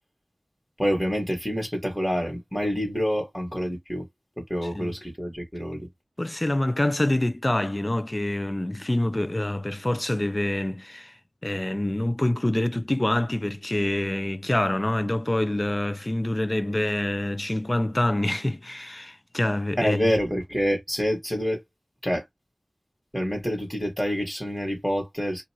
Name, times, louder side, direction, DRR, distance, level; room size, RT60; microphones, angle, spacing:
voice 1, 0.8-4.0 4.4-5.9 19.8-21.6 22.0-22.2 23.1-25.4, equal, 5° left, 1.5 m, -27 dB
voice 2, 4.6-5.0 6.2-20.2, left 1 dB, 30° left, 0.4 m, -26 dB
2.6 x 2.4 x 2.9 m
wide cardioid pair, 45°, 0 cm